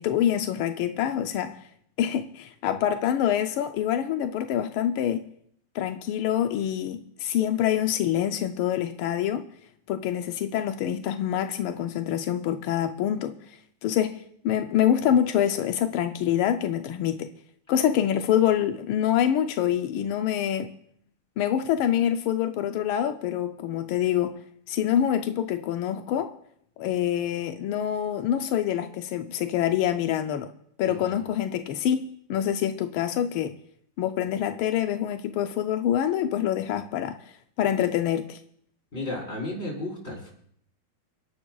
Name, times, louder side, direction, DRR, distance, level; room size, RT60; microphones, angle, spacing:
voice 1, 0.0-1.6 2.0-5.2 5.7-9.4 9.9-17.3 17.7-20.7 21.4-24.4 24.7-26.3 26.8-30.5 30.8-32.0 32.3-33.5 34.0-37.2 37.6-38.4, left 10 dB, 90° left, 7 dB, 1.5 m, -26 dB
voice 2, 30.8-31.2 38.9-40.3, left 1 dB, 30° left, -2 dB, 4.7 m, -34 dB
29.5 x 11.0 x 2.3 m, 0.68 s
omnidirectional pair, 2.3 m